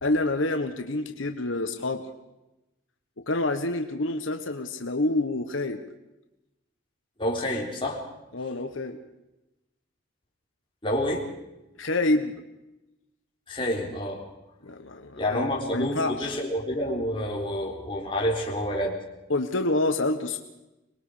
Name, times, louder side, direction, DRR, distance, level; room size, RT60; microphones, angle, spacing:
voice 1, 0.0-2.1 3.2-5.8 8.3-9.0 11.8-12.3 14.6-15.4 15.7-16.3 19.3-20.4, left 2 dB, 80° left, 6 dB, 1.4 m, -27 dB
voice 2, 7.2-8.0 10.8-11.3 13.5-14.2 15.1-19.0, left 1 dB, 25° left, -1 dB, 3.7 m, -28 dB
25.0 x 21.0 x 5.2 m, 0.95 s
head